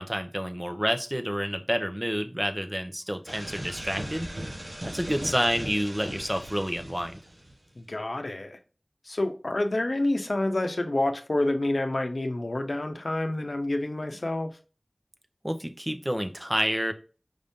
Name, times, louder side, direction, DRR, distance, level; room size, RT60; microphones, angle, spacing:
voice 1, 0.0-4.3 4.8-7.1 15.4-16.9, equal, 15° right, 0.6 m, -29 dB
sound 1, 3.3-7.7, right 1 dB, 90° right, 1.3 m, -38 dB
voice 2, 7.8-8.6 9.0-14.5, left 1 dB, 80° left, 0.6 m, -28 dB
5.1 x 2.7 x 3.5 m
wide cardioid pair, 40°, 0 cm